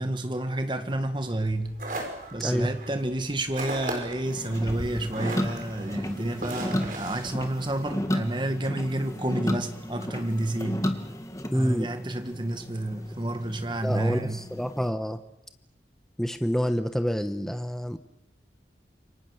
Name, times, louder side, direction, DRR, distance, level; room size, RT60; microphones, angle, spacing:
voice 1, 0.0-1.7 2.3-10.9 11.5-14.4, right 1 dB, 25° right, 1.8 m, -30 dB
sound 1, 1.4-8.1, right 2 dB, 50° right, 5.3 m, -38 dB
voice 2, 2.4-2.7 11.5-11.9 13.8-15.2 16.2-18.0, equal, ahead, 1.0 m, -27 dB
sound 2, 4.2-14.9, equal, 20° left, 1.8 m, -34 dB
28.0 x 24.0 x 6.6 m
head